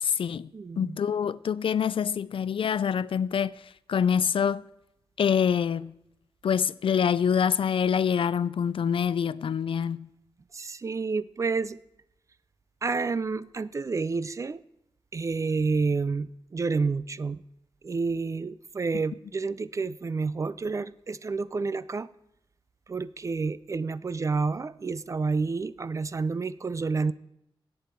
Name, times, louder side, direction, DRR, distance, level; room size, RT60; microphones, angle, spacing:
voice 1, 0.0-0.5 0.8-3.6 3.9-4.6 5.2-5.9 6.4-10.1, left 7 dB, 70° left, 0.4 m, -25 dB
voice 2, 0.5-1.0 10.5-11.8 12.8-14.6 15.1-17.4 17.8-22.1 22.9-27.1, right 4 dB, 35° right, 0.3 m, -29 dB
14.0 x 8.6 x 4.5 m
wide cardioid pair, 175°, 9 cm